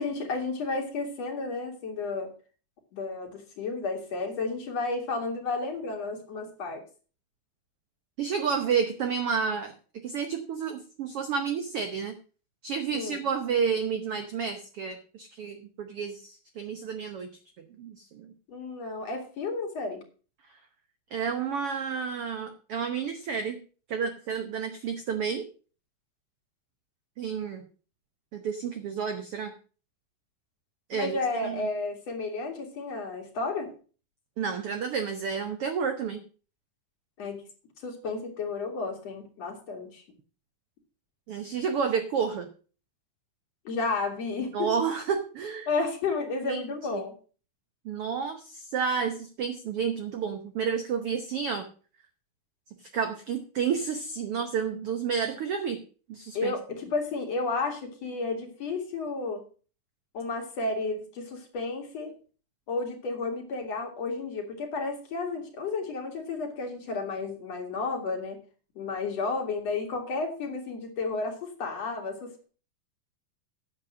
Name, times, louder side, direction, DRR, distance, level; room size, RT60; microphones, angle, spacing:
voice 1, 0.0-2.3 2.9-6.8 12.9-13.2 18.5-20.0 30.9-33.7 37.2-37.4 37.8-40.0 43.6-44.7 45.7-47.2 56.3-59.4 60.1-62.1 62.7-68.4 68.8-72.4, left 3 dB, 50° left, 3 dB, 2.9 m, -32 dB
voice 2, 8.2-9.7 10.0-12.1 12.6-17.3 17.8-18.3 21.1-23.6 23.9-25.5 27.2-27.6 28.3-29.5 30.9-31.6 34.4-36.2 41.3-42.5 44.5-45.7 46.5-46.6 46.9-47.0 47.8-51.7 52.9-55.8 56.1-56.5, right 6 dB, 75° right, 7 dB, 1.3 m, -30 dB
10.5 x 7.5 x 6.1 m, 0.38 s
omnidirectional pair, 4.0 m